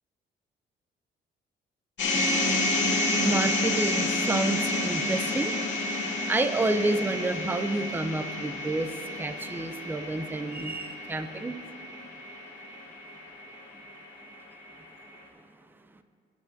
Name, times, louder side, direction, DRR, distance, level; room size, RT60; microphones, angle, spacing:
sound 1, 2.0-14.1, left 2 dB, 65° left, 2.1 m, -30 dB
voice 1, 2.9-5.6 6.0-11.6, right 2 dB, 10° right, 9 dB, 0.5 m, -29 dB
19.5 x 7.4 x 2.7 m, 2.3 s
cardioid pair, 90°, 20 cm